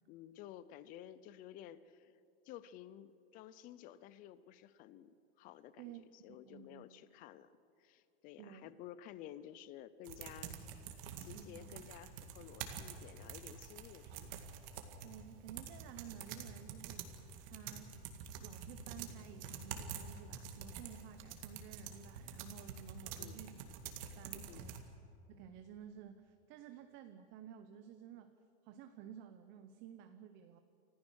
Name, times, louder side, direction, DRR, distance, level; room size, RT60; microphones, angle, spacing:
voice 1, 0.1-2.1 2.4-5.9 6.2-10.6 11.2-14.3 23.1-23.4 24.5-24.7, left 11 dB, 25° left, 17 dB, 0.5 m, -53 dB
voice 2, 5.8-6.8 8.4-8.7 11.3-11.8 15.0-18.0 18.4-23.7 24.2-24.9 25.3-28.3 28.6-30.6, right 9 dB, 35° right, 8 dB, 0.8 m, -53 dB
sound 1, 10.0-24.8, right 7 dB, 50° right, 2.1 m, -48 dB
30.0 x 14.0 x 6.4 m, 2.8 s
supercardioid pair, 150°, 34 cm